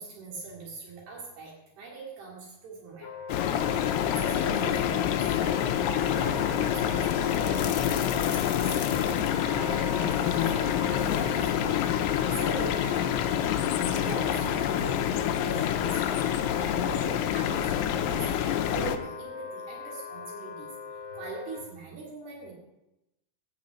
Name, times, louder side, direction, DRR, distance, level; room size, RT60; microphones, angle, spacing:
voice 1, 0.0-3.1 4.2-11.9 12.2-13.5 13.9-20.7 21.1-22.5, right 3 dB, 70° right, -4 dB, 4.4 m, -41 dB
Wind instrument woodwind instrument, 3.0-21.6, left 2 dB, 65° left, 2.7 m, -40 dB
sound 1, 3.3-19.0, left 10 dB, 80° left, 2.7 m, -27 dB
13.0 x 5.4 x 8.5 m, 0.92 s
omnidirectional pair, 4.7 m